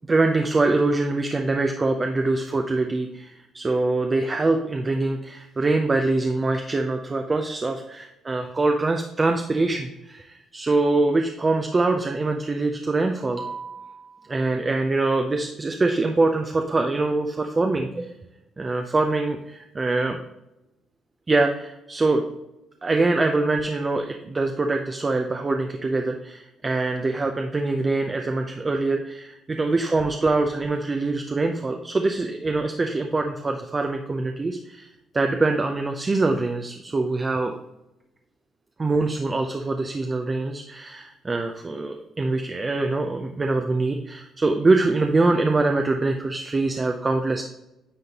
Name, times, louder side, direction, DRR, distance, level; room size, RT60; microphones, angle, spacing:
voice 1, 0.1-18.1 18.6-20.2 21.3-22.2 22.8-37.5 38.8-47.4, right 3 dB, 30° right, 4 dB, 0.5 m, -24 dB
9.3 x 3.7 x 2.9 m, 0.93 s
cardioid pair, 90°, 0 cm